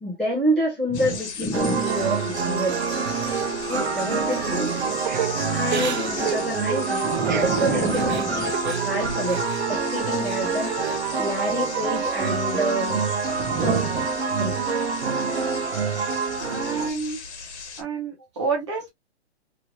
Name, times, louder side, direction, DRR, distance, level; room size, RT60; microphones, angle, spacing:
voice 1, 0.0-2.8 3.7-5.0 5.5-13.8 14.4-14.6, equal, ahead, 0.8 m, -28 dB
sound 1, 0.9-17.8, left 5 dB, 80° left, 1.1 m, -38 dB
sound 2, 1.5-16.9, right 5 dB, 70° right, 0.8 m, -26 dB
voice 2, 3.7-4.5 7.0-8.2 13.4-14.0 16.4-17.2 17.8-18.9, right 5 dB, 25° right, 0.8 m, -29 dB
Crying sobbing / Breathing, 5.0-9.7 10.0-11.0 11.4-12.2, right 9 dB, 45° right, 0.4 m, -32 dB
3.0 x 2.7 x 3.0 m
hypercardioid pair, 170°, 33 cm